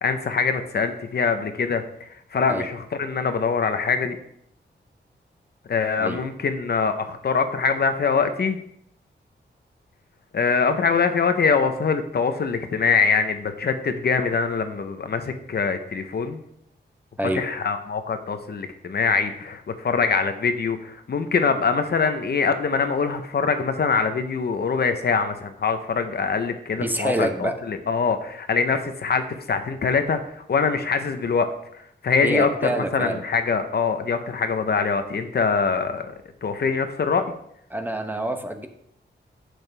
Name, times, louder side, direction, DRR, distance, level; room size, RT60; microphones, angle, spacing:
voice 1, 0.0-4.2 5.7-8.6 10.3-16.4 17.3-31.5 31.7-36.1 36.4-37.2, left 5 dB, 60° left, 8 dB, 0.9 m, -23 dB
voice 2, 26.8-27.5 32.2-33.2 37.7-38.7, right 1 dB, 10° right, 6 dB, 0.9 m, -26 dB
11.0 x 7.9 x 3.4 m, 0.72 s
wide cardioid pair, 125°, 19 cm